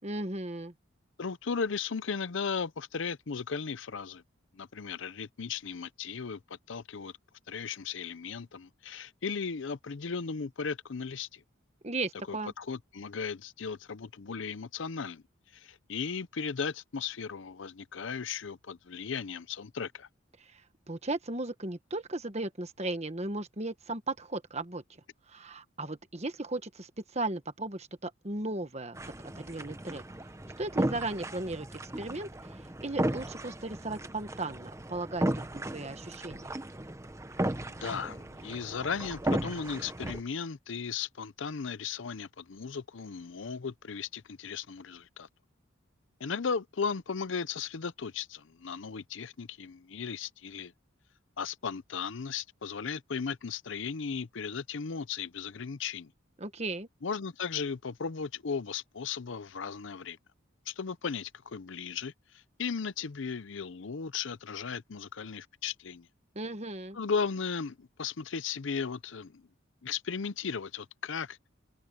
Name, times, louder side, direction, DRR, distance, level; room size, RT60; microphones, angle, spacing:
voice 1, 0.0-0.7 11.8-12.5 20.5-20.6 20.9-24.8 25.3-29.0 29.4-30.0 30.6-32.3 32.8-36.5 56.4-56.9 66.3-67.0, right 2 dB, 35° right, 1.4 m, -36 dB
voice 2, 1.2-4.2 4.5-7.1 7.5-11.4 12.3-15.2 15.5-20.1 37.8-45.3 46.2-50.7 51.4-56.1 57.0-60.2 60.7-66.1 66.9-69.4 69.8-71.4, left 5 dB, 70° left, 0.6 m, -36 dB
sound 1, 28.9-40.2, right 1 dB, 15° right, 0.9 m, -35 dB
open air
head